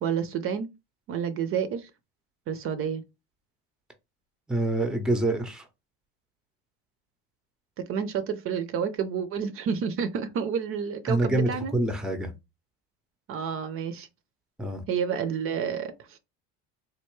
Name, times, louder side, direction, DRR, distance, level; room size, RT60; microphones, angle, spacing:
voice 1, 0.0-0.7 1.1-1.9 2.5-3.0 7.9-11.7 13.3-14.1 14.9-16.2, right 7 dB, 45° right, 0.5 m, -29 dB
voice 2, 4.5-5.6 11.1-12.3 14.6-14.8, right 2 dB, ahead, 0.6 m, -26 dB
3.3 x 2.5 x 3.1 m
supercardioid pair, 105°, 30 cm